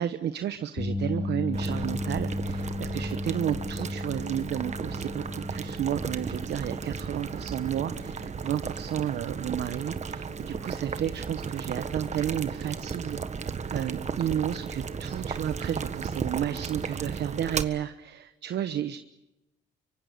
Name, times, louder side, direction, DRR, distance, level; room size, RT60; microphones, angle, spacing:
voice 1, 0.0-19.0, right 10 dB, 65° right, 10 dB, 1.1 m, -32 dB
sound 1, 0.8-13.0 13.4-13.6 15.8-15.9, left 2 dB, 45° left, 7.3 m, -37 dB
Boiling, 1.5-17.6, right 6 dB, 40° right, 1.5 m, -35 dB
24.5 x 24.5 x 6.8 m, 0.91 s
cardioid pair, 100°, 19 cm